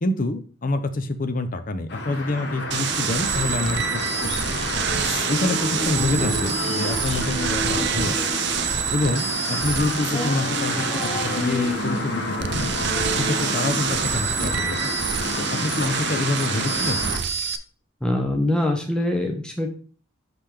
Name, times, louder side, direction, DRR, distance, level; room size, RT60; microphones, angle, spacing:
voice 1, 0.0-4.7 5.3-8.2 8.9-12.7 13.1-14.9 15.4-17.0, left 2 dB, 45° left, 9 dB, 0.6 m, -27 dB
sound 1, 1.9-17.2, left 2 dB, 60° left, 1.3 m, -30 dB
sound 2, 2.7-17.6, right 8 dB, 60° right, 0.5 m, -27 dB
sound 3, 4.5-14.9, left 1 dB, 25° left, 1.0 m, -31 dB
voice 2, 18.0-19.7, left 1 dB, 5° left, 2 dB, 0.8 m, -23 dB
6.0 x 5.6 x 3.3 m, 0.40 s
head